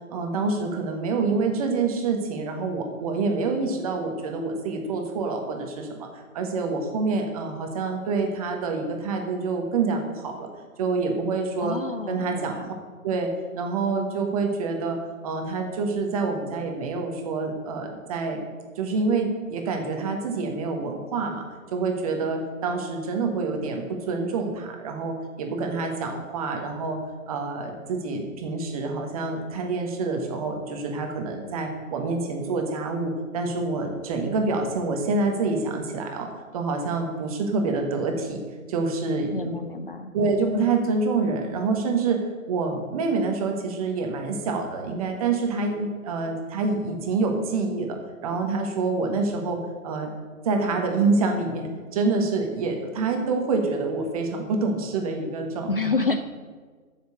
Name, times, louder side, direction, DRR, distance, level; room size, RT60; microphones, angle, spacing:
voice 1, 0.1-6.1 6.3-10.5 10.8-11.8 12.1-12.6 13.0-13.3 13.6-15.0 15.2-18.4 18.8-21.4 21.7-27.0 27.3-38.4 38.7-39.5 40.1-42.2 42.5-48.0 48.2-50.1 50.4-55.9, right 4 dB, 25° right, 3 dB, 1.3 m, -27 dB
voice 2, 11.6-12.7 39.3-40.1 55.7-56.2, left 4 dB, 40° left, 9 dB, 0.5 m, -28 dB
9.4 x 7.3 x 7.7 m, 1.5 s
figure-of-eight pair, 135°, 43 cm